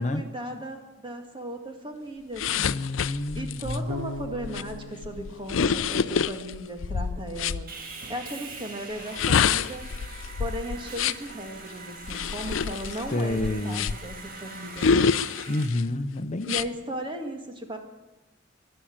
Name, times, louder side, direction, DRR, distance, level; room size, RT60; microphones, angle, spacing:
voice 1, 0.0-2.8 3.3-7.7 8.1-9.9 10.4-15.1 16.5-17.8, right 1 dB, 25° right, 4 dB, 1.9 m, -36 dB
sound 1, 2.4-7.6 9.0-11.3 12.0-14.2 14.8-15.8 16.4-16.7, left 6 dB, 85° left, 0.5 m, -27 dB
voice 2, 2.6-3.9 13.1-14.0 15.5-16.5, left 2 dB, 40° left, 9 dB, 0.7 m, -29 dB
Bass guitar, 3.9-6.9, left 1 dB, 85° right, 1.6 m, -40 dB
Sawing, 7.7-15.7, right 4 dB, 50° right, 2.0 m, -43 dB
14.0 x 11.5 x 8.7 m, 1.0 s
head